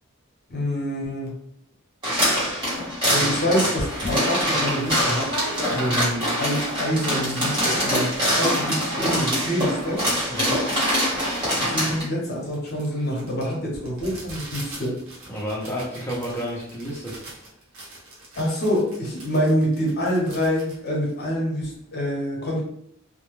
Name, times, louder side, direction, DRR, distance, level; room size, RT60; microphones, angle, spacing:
voice 1, 0.5-1.4 3.1-5.3 5.7-10.0 11.6-15.0 18.4-22.6, equal, 50° left, -2 dB, 0.7 m, -26 dB
sound 1, 2.0-12.0, equal, 20° right, 1.2 m, -24 dB
sound 2, 3.8-6.1 6.6-6.7 6.8-7.3 7.6-8.4 8.7-21.8, equal, 70° right, 0.9 m, -39 dB
voice 2, 10.3-10.6 15.3-17.2, equal, 10° left, -6 dB, 0.6 m, -30 dB
2.2 x 2.1 x 3.0 m, 0.72 s
head